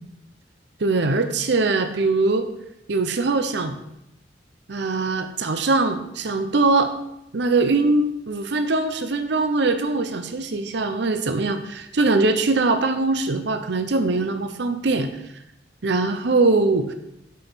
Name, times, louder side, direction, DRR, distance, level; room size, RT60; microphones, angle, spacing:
voice 1, 0.8-2.5 2.9-3.8 4.7-6.9 7.3-15.1 15.8-16.9, right 3 dB, 70° right, 7 dB, 0.7 m, -22 dB
7.6 x 5.5 x 6.0 m, 0.81 s
head